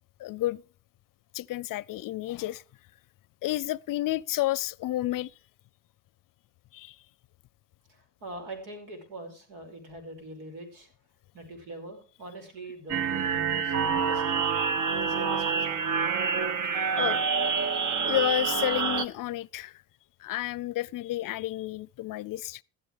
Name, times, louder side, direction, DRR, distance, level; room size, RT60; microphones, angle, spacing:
voice 1, 0.2-0.6 1.3-2.6 3.4-5.3 6.7-7.0 16.7-17.2 18.0-19.8 20.2-22.6, left 15 dB, 55° left, 0.6 m, -31 dB
voice 2, 7.9-10.9 11.3-14.4 15.0-16.1, right 1 dB, 85° right, 5.6 m, -43 dB
sound 1, 12.9-19.0, right 6 dB, 50° right, 1.3 m, -27 dB
15.0 x 13.5 x 3.3 m
hypercardioid pair, 60°, 40 cm